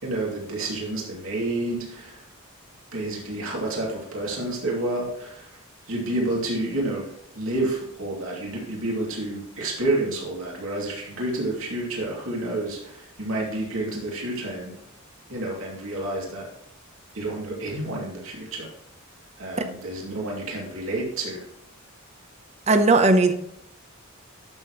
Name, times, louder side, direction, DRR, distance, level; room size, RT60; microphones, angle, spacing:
voice 1, 0.0-2.2 2.9-5.5 5.9-14.7 15.3-16.5 17.1-18.7 19.4-21.5, right 2 dB, 75° right, -3 dB, 2.6 m, -29 dB
voice 2, 22.7-23.3, right 2 dB, 30° right, 8 dB, 0.8 m, -17 dB
11.5 x 6.8 x 3.1 m, 0.75 s
head